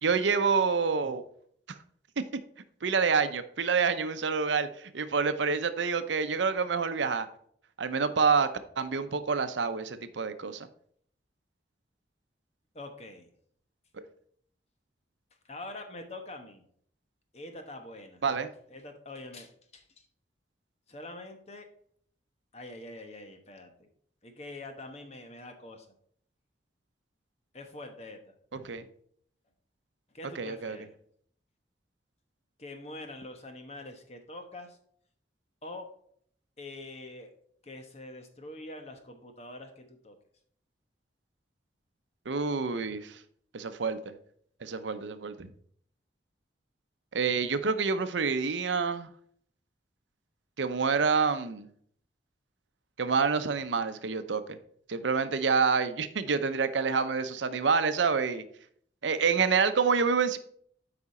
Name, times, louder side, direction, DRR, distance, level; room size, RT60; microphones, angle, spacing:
voice 1, 0.0-1.2 1.7-1.8 2.8-7.3 7.8-8.5 8.8-10.7 18.2-18.5 28.5-28.9 30.4-30.8 42.3-43.2 43.5-44.1 44.6-45.5 47.1-49.1 50.6-51.7 53.0-54.6 54.9-58.4 59.0-60.4, right 5 dB, 85° right, 11 dB, 0.7 m, -27 dB
voice 2, 12.7-13.3 15.4-16.6 17.3-18.2 18.7-19.8 20.9-21.7 22.5-23.9 24.2-25.9 27.5-28.3 30.1-30.9 32.6-34.8 35.6-35.9 36.6-37.3 37.6-40.2, left 2 dB, 35° left, 5 dB, 1.1 m, -44 dB
8.5 x 4.9 x 4.2 m, 0.62 s
head